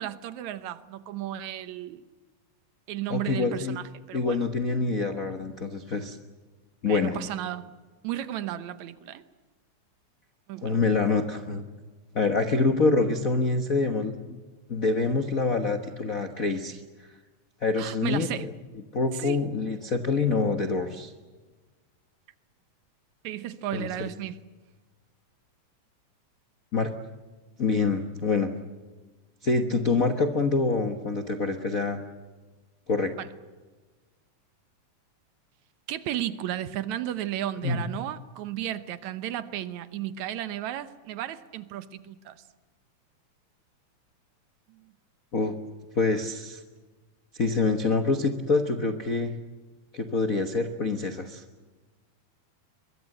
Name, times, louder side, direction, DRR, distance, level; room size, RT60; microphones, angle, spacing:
voice 1, 0.0-2.0 2.9-4.4 6.9-7.7 8.0-9.2 10.5-10.8 17.8-18.5 19.1-19.4 23.2-24.4 33.2-33.3 35.9-42.4 44.7-44.8, right 12 dB, 75° right, 13 dB, 2.2 m, -34 dB
voice 2, 3.1-3.8 4.1-6.2 6.8-7.2 10.6-11.6 12.1-14.4 14.7-16.8 17.6-18.3 18.9-21.1 23.7-24.1 26.7-26.9 27.6-28.5 29.4-32.0 32.9-33.1 37.6-37.8 45.3-45.5 45.9-46.6 47.3-49.3 49.9-51.4, left 3 dB, 55° left, 7 dB, 0.9 m, -26 dB
23.5 x 22.0 x 7.8 m, 1.3 s
omnidirectional pair, 3.5 m